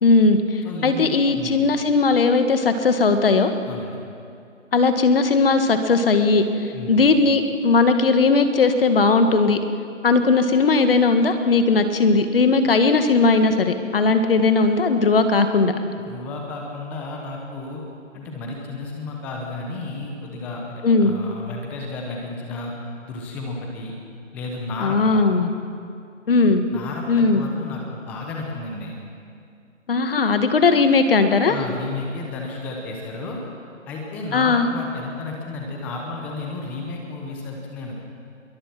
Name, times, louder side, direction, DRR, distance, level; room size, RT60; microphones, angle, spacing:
voice 1, 0.0-3.5 4.7-9.6 10.0-15.7 20.8-21.2 24.8-25.5 26.3-26.7 27.1-27.4 29.9-31.6 34.3-34.7, left 3 dB, 45° left, 8 dB, 1.9 m, -18 dB
voice 2, 0.6-1.1 1.3-1.6 3.7-4.0 6.7-7.0 16.1-17.8 18.1-22.7 23.0-23.9 24.3-25.2 26.7-29.0 31.5-33.4 33.9-38.0, left 3 dB, 5° left, 0 dB, 0.9 m, -32 dB
26.0 x 22.5 x 6.1 m, 2.4 s
figure-of-eight pair, 160°, 38 cm